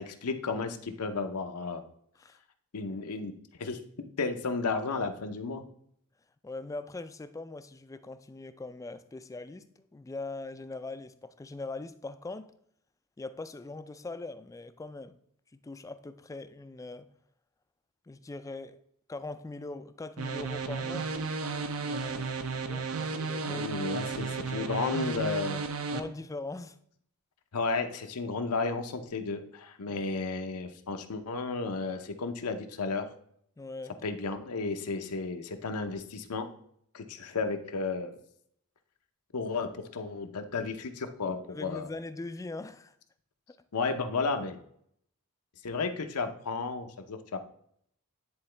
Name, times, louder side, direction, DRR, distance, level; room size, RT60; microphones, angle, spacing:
voice 1, 0.0-1.8 2.7-3.3 3.6-5.6 23.4-25.6 27.5-33.1 34.0-36.5 36.9-38.2 39.3-41.9 43.7-44.6 45.6-47.4, left 4 dB, 85° left, 0.7 m, -33 dB
voice 2, 6.4-12.5 13.2-15.2 15.5-17.1 18.1-18.8 19.1-21.1 21.8-23.7 25.9-26.8 29.9-30.0 33.6-33.9 41.5-43.0, left 2 dB, 15° left, 0.3 m, -41 dB
sound 1, 20.2-26.0, right 4 dB, 65° right, 0.6 m, -33 dB
9.8 x 3.9 x 3.3 m
head